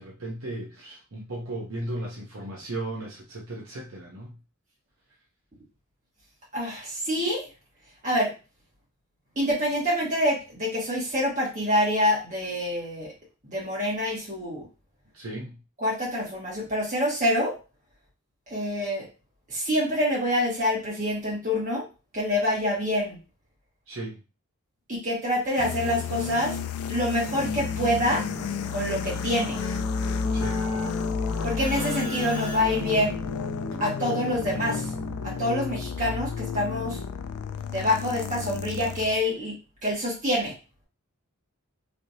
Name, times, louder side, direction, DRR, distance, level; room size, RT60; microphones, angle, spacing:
voice 1, 0.0-4.3 15.1-15.6 23.9-24.2 30.3-30.6, right 1 dB, 65° right, -3 dB, 0.9 m, -36 dB
voice 2, 6.5-7.4 8.0-8.3 9.3-13.1 13.4-14.6 15.8-17.5 18.5-19.1 19.5-21.8 22.1-23.2 24.9-26.6 26.9-28.2 28.7-29.6 31.4-33.2 33.8-34.8 35.2-37.0 37.7-39.6 39.8-40.5, left 1 dB, 35° right, -5 dB, 1.6 m, -26 dB
Reese Malfunction, 25.6-39.2, left 6 dB, 75° left, 0.3 m, -32 dB
Keyboard (musical), 27.2-35.5, left 2 dB, 20° left, 1.3 m, -34 dB
3.3 x 2.8 x 2.8 m, 0.30 s
head